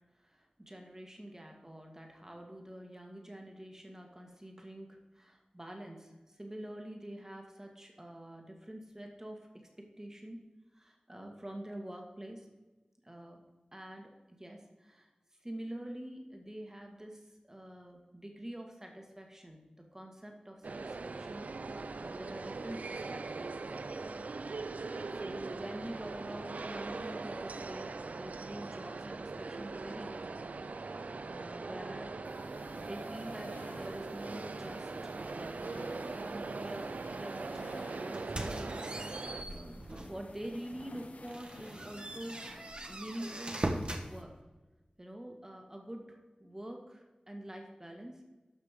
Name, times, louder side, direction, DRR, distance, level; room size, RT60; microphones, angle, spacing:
voice 1, 0.1-10.4 10.7-12.5 13.0-13.4 13.7-15.1 15.4-23.5 25.1-32.1 32.7-42.4 42.9-43.7 43.9-44.4 45.0-48.3, right 1 dB, 20° right, 2 dB, 2.0 m, -46 dB
sound 1, 20.6-39.4, right 3 dB, 75° right, 0.5 m, -41 dB
sound 2, 32.2-44.2, left 2 dB, 75° left, 0.9 m, -53 dB
sound 3, 38.1-40.2 40.7-40.8 41.2-44.1, right 1 dB, 45° right, 1.4 m, -40 dB
12.5 x 5.9 x 5.2 m, 1.2 s
wide cardioid pair, 65°, 3 cm